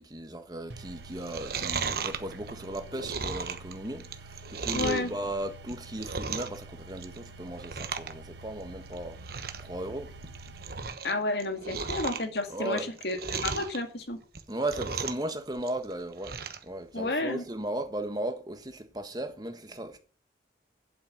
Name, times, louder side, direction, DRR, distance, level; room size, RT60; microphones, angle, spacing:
voice 1, 0.0-9.2 9.6-10.1 12.5-12.9 14.5-16.4 16.6-20.0, right 1 dB, 20° right, 1.4 m, -36 dB
sound 1, 0.7-10.8, right 2 dB, 75° right, 1.2 m, -47 dB
Chewing mastication, 1.1-5.1 5.6-6.6 6.9-7.3 7.6-8.1 8.4-8.5 8.9-9.0 9.2-9.7 10.1-11.1 11.4-13.8 14.2-15.3 15.6-16.6 17.0-17.1, right 5 dB, 55° right, 1.1 m, -35 dB
voice 2, 4.7-5.1 11.0-14.2 16.9-17.4, left 2 dB, 65° left, 2.2 m, -31 dB
8.6 x 8.0 x 7.6 m
head